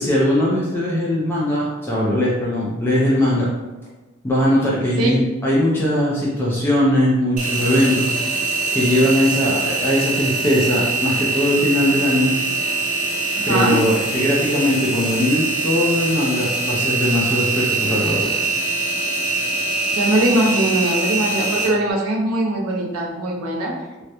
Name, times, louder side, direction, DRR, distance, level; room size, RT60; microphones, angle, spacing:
voice 1, 0.0-3.5 4.2-8.1 8.7-12.4 13.5-18.3, left 1 dB, 10° left, -6 dB, 0.3 m, -20 dB
Engine, 7.4-21.7, right 3 dB, 35° right, 0.6 m, -23 dB
voice 2, 13.4-13.8 19.9-23.7, right 1 dB, 85° right, -1 dB, 0.5 m, -21 dB
2.2 x 2.0 x 2.8 m, 1.1 s
head